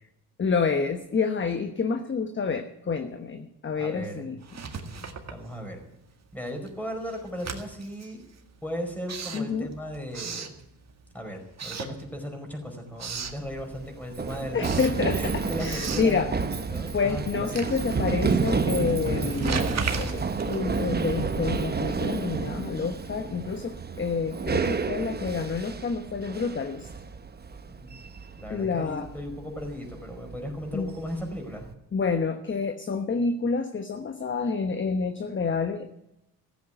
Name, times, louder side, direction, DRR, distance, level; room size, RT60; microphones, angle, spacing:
voice 1, 0.4-4.4 9.3-9.7 14.5-16.3 16.9-19.7 20.0-26.9 28.5-29.1 30.7-30.9 31.9-35.9, left 5 dB, 30° left, 8 dB, 1.1 m, -28 dB
voice 2, 3.7-4.3 4.7-5.8 6.3-8.2 8.6-10.5 11.1-17.6 27.7-31.7, equal, 5° left, 3 dB, 4.9 m, -37 dB
Writing, 4.4-6.0 6.3-11.1 11.5-12.5 12.8-13.4 13.9-21.5, right 5 dB, 40° right, 2.1 m, -37 dB
Run, 13.2-31.7, right 4 dB, 25° right, 1.0 m, -31 dB
15.0 x 8.5 x 9.1 m, 0.85 s
cardioid pair, 90°, 42 cm